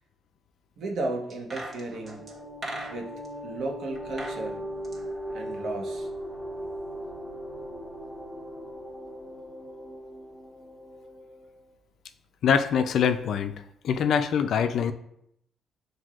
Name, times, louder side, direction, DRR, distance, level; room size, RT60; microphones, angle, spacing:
voice 1, 0.8-2.2 2.9-3.1 3.4-4.7 5.3-6.1, right 2 dB, 70° right, 1 dB, 1.0 m, -34 dB
sound 1, 1.3-3.3 4.0-4.4 4.7-6.1 6.3-6.4, right 1 dB, 35° right, 1.3 m, -40 dB
sound 2, 1.5-11.7, equal, ahead, 1.1 m, -39 dB
voice 2, 12.4-13.5 13.8-14.9, left 7 dB, 70° left, 10 dB, 0.4 m, -24 dB
7.4 x 2.6 x 2.4 m, 0.74 s
cardioid pair, 90°, 0 cm